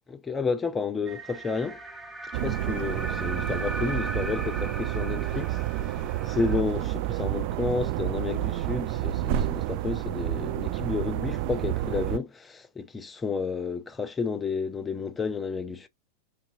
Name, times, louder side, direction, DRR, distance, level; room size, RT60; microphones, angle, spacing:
voice 1, 0.1-1.8 2.2-15.9, left 4 dB, 15° left, 0.6 m, -31 dB
sound 1, 1.0-6.6, right 2 dB, 5° right, 1.4 m, -38 dB
sound 2, 2.3-12.2, right 14 dB, 45° right, 0.3 m, -29 dB
5.1 x 2.7 x 2.6 m
figure-of-eight pair, 90°, 0 cm